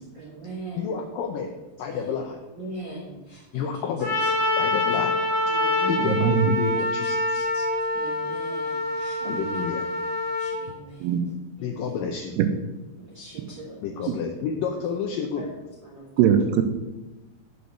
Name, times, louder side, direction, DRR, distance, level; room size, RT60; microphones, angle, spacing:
voice 1, 0.0-1.0 1.9-2.2 2.6-3.9 4.2-4.3 5.5-6.3 6.5-7.6 7.9-9.2 10.3-11.2 11.6-12.0 13.0-14.1 14.7-14.8 15.3-15.5 15.8-16.3, right 2 dB, 70° right, -6 dB, 1.1 m, -40 dB
voice 2, 0.8-1.5 1.8-2.4 3.5-4.2 4.6-5.2 5.9-7.4 9.2-9.9 11.6-12.4 13.8-15.5, left 6 dB, 85° left, 3 dB, 1.9 m, -30 dB
Trumpet, 4.0-10.6, left 2 dB, 50° left, 2.6 m, -26 dB
voice 3, 6.0-6.5 11.0-11.2 12.4-12.5 16.2-16.6, right 9 dB, 90° right, 8 dB, 2.7 m, -20 dB
8.1 x 5.2 x 6.4 m, 1.1 s
omnidirectional pair, 4.7 m